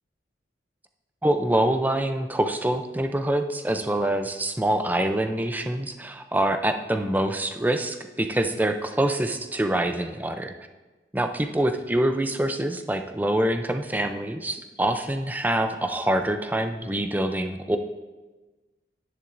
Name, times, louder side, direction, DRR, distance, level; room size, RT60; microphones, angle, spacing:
voice 1, 1.2-10.5 11.1-17.8, right 1 dB, 10° right, 7 dB, 0.4 m, -25 dB
10.5 x 9.9 x 2.6 m, 1.2 s
head